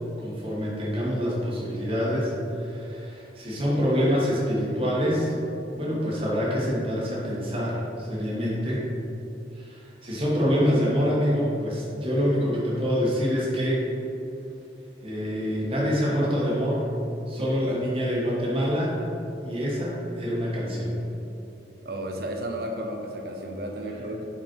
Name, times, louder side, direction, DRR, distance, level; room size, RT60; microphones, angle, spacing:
voice 1, 0.2-5.3 5.7-8.8 9.5-13.8 15.0-16.8 17.3-18.9 19.4-20.9, equal, 30° right, -5 dB, 1.3 m, -26 dB
voice 2, 17.4-17.8 21.8-24.2, right 1 dB, 55° right, 3 dB, 0.7 m, -33 dB
5.2 x 5.2 x 4.5 m, 2.8 s
head